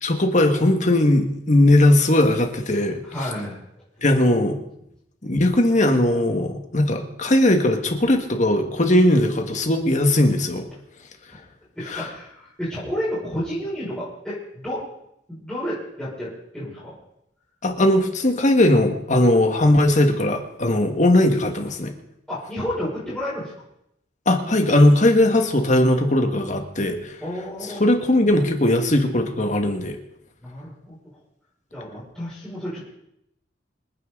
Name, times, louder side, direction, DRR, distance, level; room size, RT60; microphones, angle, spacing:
voice 1, 0.0-3.0 4.0-4.6 5.2-10.7 11.9-12.1 17.6-21.9 24.3-27.1 27.8-30.0, left 1 dB, 40° left, 4 dB, 1.9 m, -19 dB
voice 2, 3.0-3.8 11.3-11.4 11.7-14.8 15.3-17.0 22.3-23.5 27.2-27.8 30.4-31.0 31.7-32.9, equal, 5° left, -10 dB, 6.3 m, -31 dB
27.0 x 9.7 x 4.0 m, 0.80 s
head